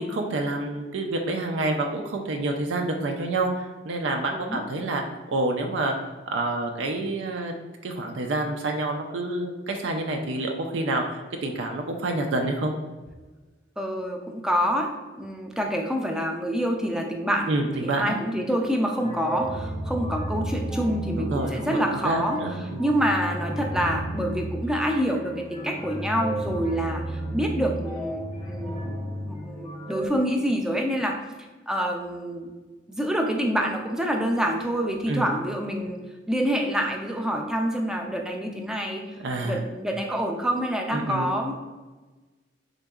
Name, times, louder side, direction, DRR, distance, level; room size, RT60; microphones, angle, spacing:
voice 1, 0.0-5.0 5.3-5.9 6.3-7.5 7.8-12.7 17.5-18.2 21.2-22.8 35.1-35.3 39.2-39.6 40.9-41.3, right 2 dB, 85° right, 3 dB, 0.4 m, -28 dB
voice 2, 13.8-14.9 15.2-28.9 29.3-31.2 31.7-32.5 32.9-36.0 36.3-39.0 39.4-41.5, equal, 5° right, 1 dB, 0.4 m, -27 dB
sound 1, 19.0-30.1, right 1 dB, 35° left, 0.7 m, -33 dB
3.9 x 3.5 x 2.3 m, 1.3 s
head